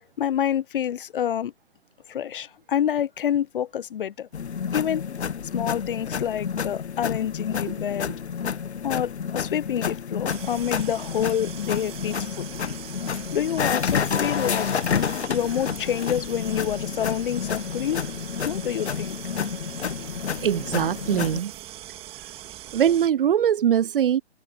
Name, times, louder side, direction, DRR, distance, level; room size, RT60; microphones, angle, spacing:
voice 1, 0.0-1.5 2.1-4.3 4.7-5.0 5.5-8.1 8.8-12.4 13.3-14.7 14.9-18.0 18.4-19.2, left 9 dB, 50° left, 0.5 m, -27 dB
sound 1, 4.3-21.4, left 7 dB, 75° left, 1.1 m, -29 dB
sound 2, 10.3-23.1, right 14 dB, 15° right, 2.4 m, -41 dB
voice 2, 20.4-21.5 22.7-24.2, right 9 dB, 55° right, 0.5 m, -21 dB
hypercardioid pair, 145°, 33 cm